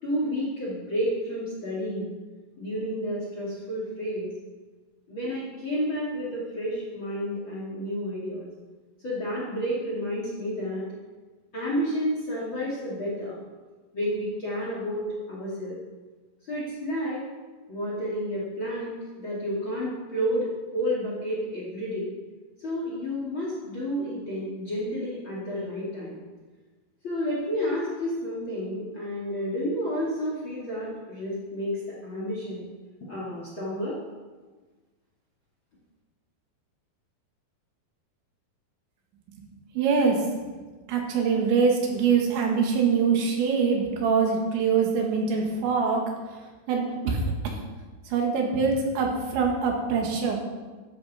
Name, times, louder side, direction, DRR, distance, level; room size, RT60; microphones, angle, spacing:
voice 1, 0.0-2.1 2.6-4.3 5.1-8.4 9.0-10.8 11.5-13.3 13.9-15.8 16.5-17.2 17.7-22.1 22.6-26.2 27.0-32.7 33.0-34.0, equal, 35° left, -4 dB, 2.7 m, -30 dB
voice 2, 39.7-40.5 40.9-46.1 46.7-47.6 48.0-50.4, right 5 dB, 80° right, 1 dB, 4.2 m, -24 dB
13.0 x 12.5 x 4.3 m, 1.3 s
omnidirectional pair, 5.2 m